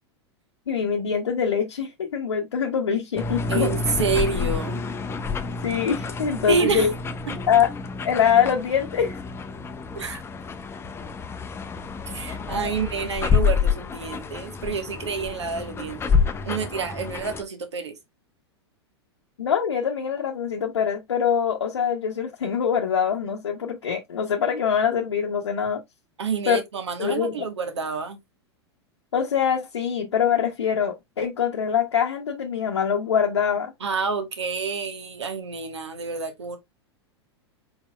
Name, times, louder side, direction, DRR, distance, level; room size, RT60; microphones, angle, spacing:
voice 1, 0.7-3.7 5.6-6.9 7.5-7.7 8.0-9.2 19.4-25.8 26.5-26.6 27.0-27.3 29.1-33.7, left 7 dB, 80° left, 0.8 m, -24 dB
sound 1, 3.2-17.4, left 5 dB, 15° left, 0.6 m, -28 dB
voice 2, 3.5-4.8 6.5-6.9 7.3-7.4 9.9-10.2 12.1-16.1 16.4-18.0 26.2-28.2 33.8-36.6, right 5 dB, 80° right, 1.2 m, -28 dB
4.5 x 4.2 x 2.2 m
hypercardioid pair, 95°, 14 cm